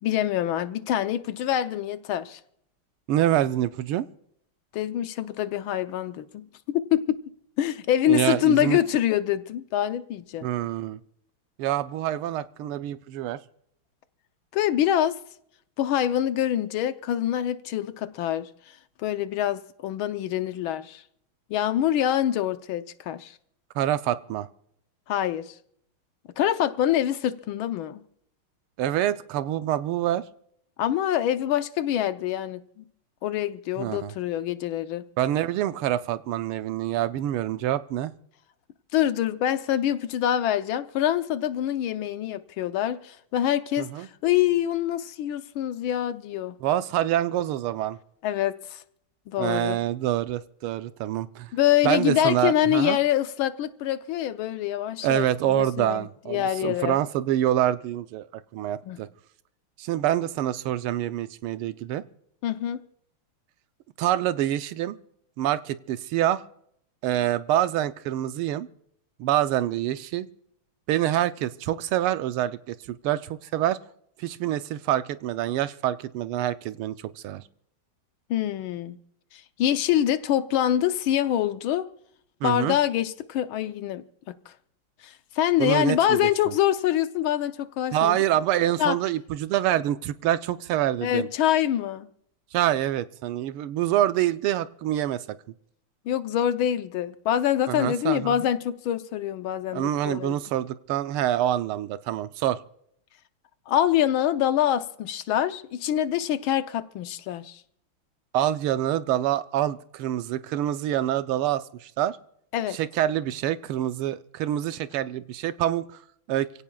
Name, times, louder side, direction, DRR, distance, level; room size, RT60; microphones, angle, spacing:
voice 1, 0.0-2.4 4.7-7.2 7.6-10.5 14.5-15.2 15.8-18.5 19.0-21.0 21.5-23.3 25.1-25.5 26.4-28.0 30.8-32.9 33.2-35.0 38.9-46.6 48.2-48.8 49.3-49.8 51.5-57.0 58.8-59.0 62.4-62.8 78.3-79.0 79.3-81.9 82.4-84.3 85.0-88.2 88.8-89.0 91.0-92.1 96.1-100.4 103.7-107.6 112.5-112.8, left 11 dB, 75° left, 1.5 m, -25 dB
voice 2, 3.1-4.1 8.1-8.8 10.4-11.0 11.6-13.4 23.7-24.5 28.8-30.2 33.8-34.1 35.2-38.1 43.8-44.1 46.6-48.0 49.4-51.5 51.8-53.0 55.0-58.3 58.5-59.1 59.8-62.0 64.0-65.0 65.4-66.4 67.0-68.7 69.2-70.3 70.9-73.8 74.2-77.4 82.4-82.8 85.6-86.5 87.9-91.3 92.5-95.2 97.7-98.5 99.7-102.6 108.3-112.2 112.7-115.8 116.3-116.5, right 12 dB, 90° right, 1.6 m, -26 dB
28.5 x 17.0 x 2.3 m
omnidirectional pair, 2.3 m